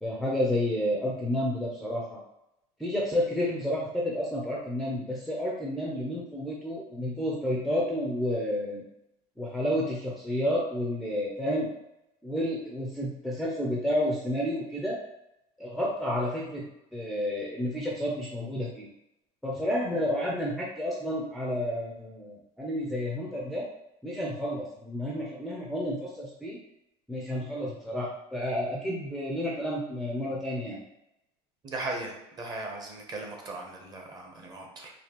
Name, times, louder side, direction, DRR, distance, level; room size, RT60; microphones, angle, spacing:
voice 1, 0.0-2.2 2.8-8.8 9.4-11.7 12.2-15.0 15.6-16.6 16.9-18.9 19.4-23.6 24.0-26.6 27.1-30.8, left 1 dB, ahead, -3 dB, 0.5 m, -30 dB
voice 2, 31.6-34.9, right 2 dB, 30° right, 1 dB, 0.8 m, -38 dB
4.1 x 2.7 x 2.9 m, 0.86 s
cardioid pair, 140°, 14 cm